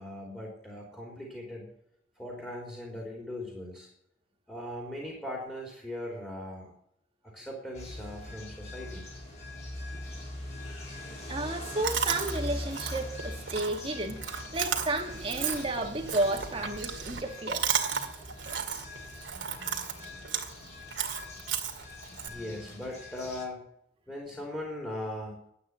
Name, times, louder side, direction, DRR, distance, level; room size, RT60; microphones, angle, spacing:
voice 1, 0.0-1.7 2.2-3.9 4.5-6.7 7.2-9.1 22.3-23.6 24.1-25.5, left 1 dB, 10° left, 3.3 m, -39 dB
sound 1, 7.7-23.4, left 1 dB, 35° left, 6.6 m, -42 dB
voice 2, 11.3-17.7, right 2 dB, 30° right, 1.9 m, -32 dB
Chewing mastication, 11.8-22.3, right 7 dB, 85° right, 2.2 m, -35 dB
12.0 x 9.0 x 9.5 m
head